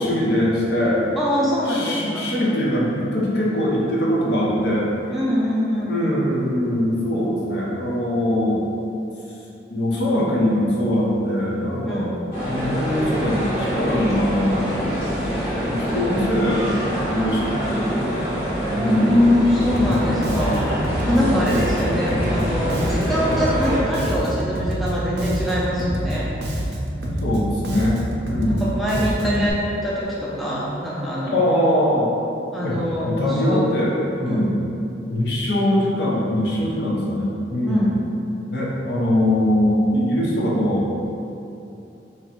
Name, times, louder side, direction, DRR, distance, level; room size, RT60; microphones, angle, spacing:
voice 1, 0.0-1.0 1.7-5.1 5.9-8.6 9.7-12.1 12.5-16.7 17.1-18.3 18.7-19.2 19.7-20.4 20.9-21.6 22.1-22.4 27.0-28.6 29.0-29.5 31.3-32.1 32.6-32.8 33.0-33.9 34.2-34.5 35.1-37.9 38.5-41.0, left 1 dB, 70° left, -5 dB, 0.7 m, -22 dB
voice 2, 1.2-2.3 5.1-6.3 11.8-12.2 15.9-16.5 18.7-26.3 28.4-31.4 32.5-33.6 34.3-34.5 37.6-37.9, equal, ahead, -8 dB, 0.5 m, -23 dB
sound 1, 12.3-23.8, equal, 50° left, 1.5 m, -25 dB
Bass guitar, 19.6-29.5, right 1 dB, 65° right, 0.4 m, -27 dB
3.0 x 2.6 x 4.3 m, 2.8 s
head